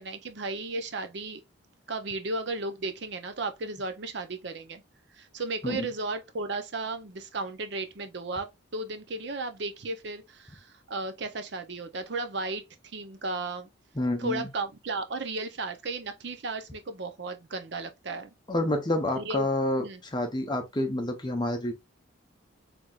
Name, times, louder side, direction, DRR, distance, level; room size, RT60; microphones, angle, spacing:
voice 1, 0.0-1.4 1.9-4.8 5.2-12.7 12.9-13.7 14.2-18.3 19.2-19.5 19.8-20.0, right 3 dB, 55° right, 0.7 m, -34 dB
voice 2, 14.0-14.5 18.5-21.7, left 1 dB, 20° left, 0.8 m, -28 dB
4.7 x 3.4 x 2.4 m
head